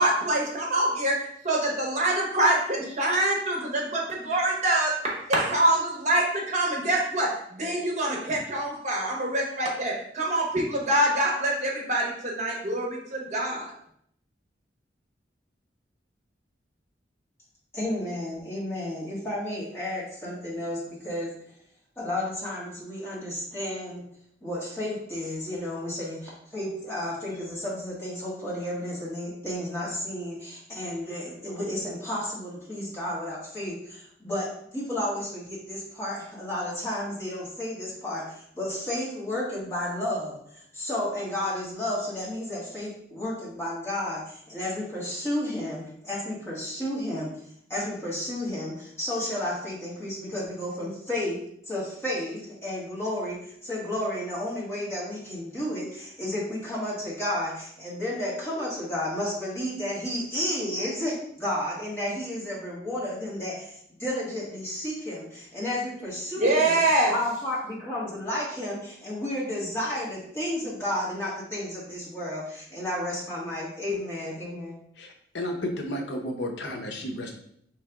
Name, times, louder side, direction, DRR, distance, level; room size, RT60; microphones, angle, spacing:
voice 1, 0.0-13.7 66.4-67.1, right 1 dB, 40° right, -2 dB, 1.1 m, -25 dB
voice 2, 17.7-21.3 22.0-24.0 24.4-47.3 47.7-51.4 51.7-66.8 67.1-74.8, left 1 dB, 15° left, -6 dB, 1.5 m, -32 dB
voice 3, 75.0-77.3, left 1 dB, 80° left, 3 dB, 0.7 m, -32 dB
4.6 x 3.2 x 3.5 m, 0.68 s
head